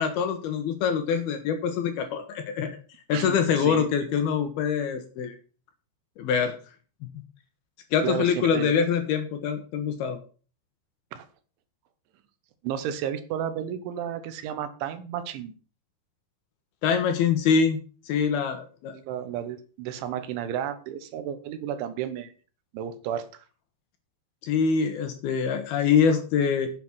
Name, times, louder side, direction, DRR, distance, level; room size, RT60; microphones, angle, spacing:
voice 1, 0.0-2.8 3.1-5.4 6.2-6.6 7.9-10.2 16.8-17.8 18.1-18.9 24.4-26.7, left 6 dB, 70° left, 7 dB, 2.7 m, -24 dB
voice 2, 3.1-3.9 8.0-8.7 11.1-11.3 12.6-15.5 18.9-22.3 22.7-23.3, right 9 dB, 80° right, 11 dB, 3.5 m, -32 dB
9.1 x 7.8 x 6.1 m, 0.38 s
omnidirectional pair, 5.3 m